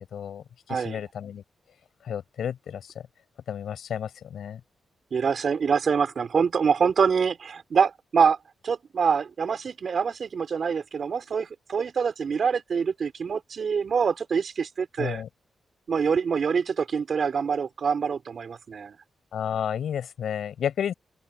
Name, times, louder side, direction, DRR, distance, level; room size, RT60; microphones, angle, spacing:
voice 1, 0.1-1.4 2.0-2.9 3.5-4.6 15.0-15.3 19.3-20.9, left 8 dB, 80° left, 5.3 m, -31 dB
voice 2, 0.7-1.0 5.1-8.4 8.6-15.2 15.9-19.0, right 6 dB, 60° right, 4.4 m, -25 dB
open air
cardioid pair, 55°, 0 cm